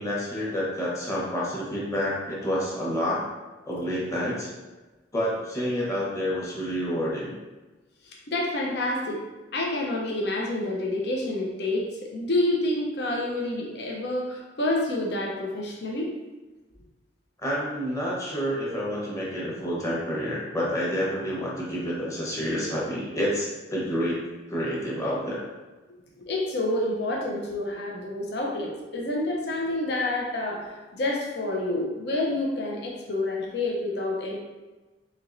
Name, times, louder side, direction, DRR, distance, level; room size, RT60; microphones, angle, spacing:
voice 1, 0.0-3.2 3.6-4.5 5.1-7.4 17.4-24.2 24.5-25.4, equal, 20° left, -6 dB, 1.0 m, -28 dB
voice 2, 8.0-9.2 9.5-16.1 26.2-34.4, left 1 dB, 65° left, -1 dB, 0.7 m, -28 dB
4.4 x 2.9 x 2.5 m, 1.2 s
head